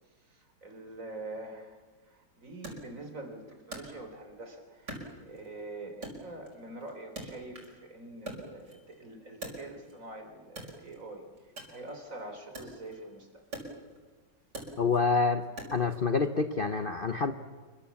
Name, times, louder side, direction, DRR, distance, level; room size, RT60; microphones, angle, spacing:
voice 1, 0.3-1.8 2.1-11.2 11.7-13.4, right 2 dB, 45° right, 5 dB, 4.1 m, -45 dB
Wood, 2.6-4.4 4.9-5.6 6.0-7.8 8.1-10.1 10.5-16.0, right 2 dB, 65° right, 6.2 m, -45 dB
voice 2, 14.8-15.4 15.7-17.3, left 4 dB, 40° left, 8 dB, 0.9 m, -27 dB
27.5 x 23.5 x 7.2 m, 1.4 s
omnidirectional pair, 1.9 m